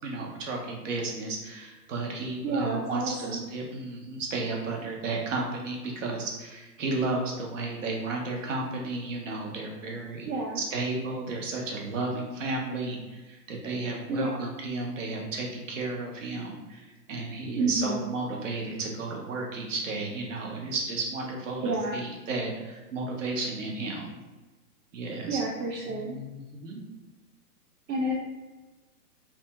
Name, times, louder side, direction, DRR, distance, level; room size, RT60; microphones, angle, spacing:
voice 1, 0.0-10.3 10.5-21.6 21.9-24.1 24.9-25.4 25.8-26.8, right 3 dB, 50° right, -1 dB, 0.7 m, -33 dB
voice 2, 2.4-3.5 10.2-10.6 14.1-14.3 17.5-18.0 21.6-22.0 25.3-26.2 27.9-28.1, right 2 dB, 90° right, -3 dB, 0.6 m, -29 dB
2.6 x 2.3 x 2.8 m, 1.2 s
hypercardioid pair, 150°, 49 cm